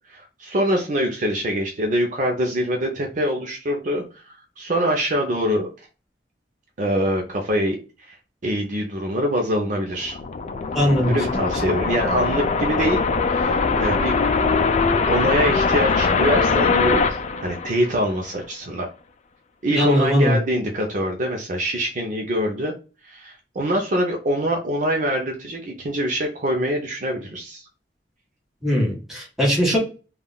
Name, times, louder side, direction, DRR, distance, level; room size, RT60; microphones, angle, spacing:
voice 1, 0.1-5.7 6.8-8.2 8.4-10.2 11.1-13.0 13.3-14.7 15.1-18.9 19.6-22.7 23.0-27.6, equal, 45° right, 1 dB, 0.6 m, -24 dB
sound 1, 9.9-18.2, left 4 dB, 40° left, 0.4 m, -22 dB
voice 2, 10.7-11.1 19.7-20.4 28.6-29.8, equal, ahead, -4 dB, 1.6 m, -20 dB
3.6 x 2.3 x 2.2 m, 0.33 s
head